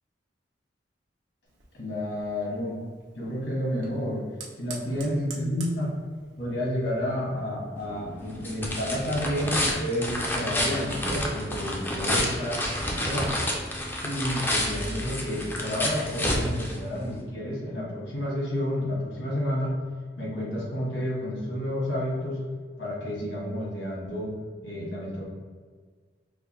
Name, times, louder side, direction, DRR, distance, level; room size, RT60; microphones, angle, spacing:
Fire, 1.5-8.7, right 4 dB, 90° right, 0.7 m, -48 dB
voice 1, 1.7-2.8 3.1-4.2 4.6-6.0 6.4-12.6 12.9-13.3 14.0-19.7 20.2-22.4 22.8-24.4 24.6-25.2, equal, 75° left, -5 dB, 1.4 m, -30 dB
sound 1, 7.8-17.2, left 1 dB, 10° left, 0.4 m, -30 dB
4.9 x 2.1 x 3.0 m, 1.5 s
head